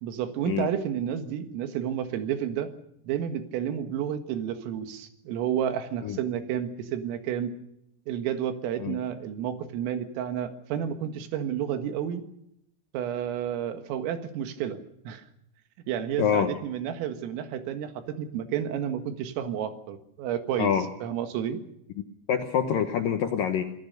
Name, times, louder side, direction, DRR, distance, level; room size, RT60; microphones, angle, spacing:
voice 1, 0.0-2.7 3.1-7.5 8.1-12.2 12.9-15.3 15.9-20.7 21.0-21.6, right 9 dB, 80° right, 8 dB, 4.3 m, -31 dB
voice 2, 16.2-16.5 20.6-20.9 22.3-23.6, left 8 dB, 85° left, 6 dB, 1.9 m, -25 dB
26.5 x 17.0 x 6.7 m, 0.78 s
omnidirectional pair, 5.9 m